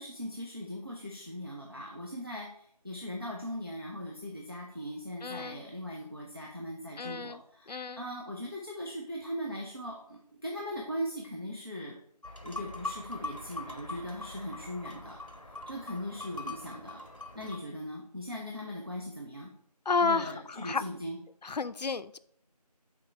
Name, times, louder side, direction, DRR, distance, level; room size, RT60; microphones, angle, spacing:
voice 1, 0.0-11.9 12.4-15.2 15.7-17.0 17.3-19.5 20.0-21.2, equal, 35° right, 0.7 m, -39 dB
voice 2, 5.2-5.6 7.0-7.4 7.7-8.0 19.9-20.8 21.4-22.2, left 4 dB, 80° left, 0.4 m, -31 dB
sound 1, 12.2-17.6, left 2 dB, 50° left, 1.0 m, -42 dB
6.4 x 4.3 x 4.4 m
figure-of-eight pair, 180°, 21 cm